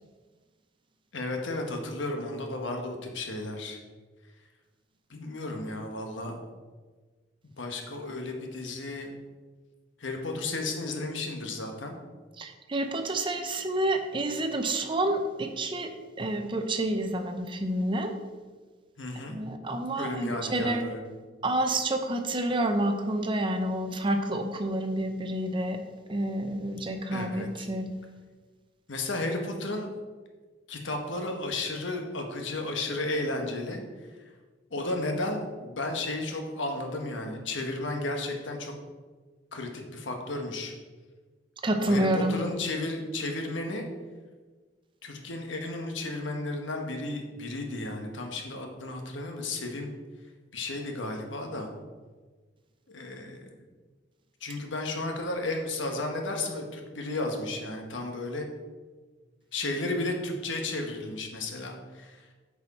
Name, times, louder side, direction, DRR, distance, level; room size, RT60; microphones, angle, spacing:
voice 1, 1.1-3.8 5.1-6.4 7.6-9.1 10.0-12.0 19.0-19.4 20.0-21.0 27.1-27.7 28.9-29.9 30.7-33.8 34.7-38.7 39.5-40.7 41.8-43.9 45.0-49.9 50.5-51.7 52.9-53.5 54.4-58.5 59.5-62.3, left 2 dB, 85° left, 3 dB, 1.2 m, -33 dB
voice 2, 12.4-15.9 16.2-18.1 19.3-20.8 21.4-25.8 26.1-27.9 41.6-42.4, right 1 dB, 25° right, 6 dB, 0.6 m, -29 dB
8.4 x 4.8 x 4.2 m, 1.4 s
head